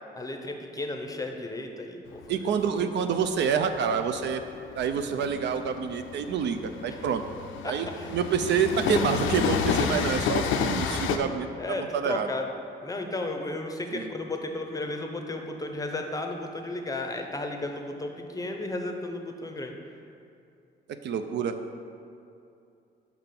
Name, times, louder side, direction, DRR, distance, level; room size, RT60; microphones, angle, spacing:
voice 1, 0.1-2.5 7.6-8.1 11.6-12.4 12.8-19.7, left 2 dB, 15° left, 3 dB, 0.6 m, -34 dB
Train, 2.1-11.2, left 6 dB, 85° left, 0.5 m, -30 dB
voice 2, 2.3-4.4 4.8-7.2 7.6-12.3 13.9-14.1 21.0-21.6, right 7 dB, 65° right, 8 dB, 0.4 m, -27 dB
5.8 x 3.6 x 5.8 m, 2.6 s
cardioid pair, 90°, 20 cm